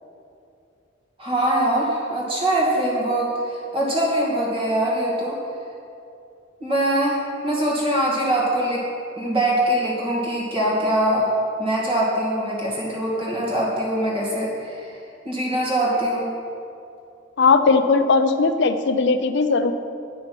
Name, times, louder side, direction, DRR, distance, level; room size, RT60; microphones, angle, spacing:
voice 1, 1.2-5.4 6.6-8.8 9.2-11.3 11.6-15.0 15.2-16.3, right 1 dB, 30° right, -4 dB, 2.3 m, -23 dB
voice 2, 17.4-19.7, left 4 dB, 65° left, 10 dB, 0.6 m, -18 dB
9.5 x 6.2 x 6.0 m, 2.6 s
head